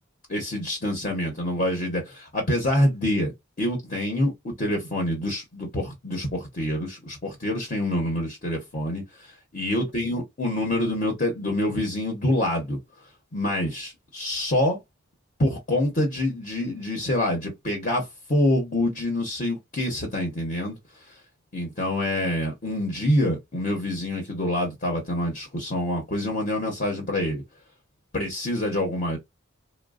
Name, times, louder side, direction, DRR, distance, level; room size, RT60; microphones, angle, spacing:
voice 1, 0.3-3.3 3.6-9.3 9.5-12.8 13.3-14.8 15.4-20.8 21.5-27.4 28.1-29.2, left 1 dB, 45° left, 0.8 m, -26 dB
3.1 x 2.1 x 2.4 m
head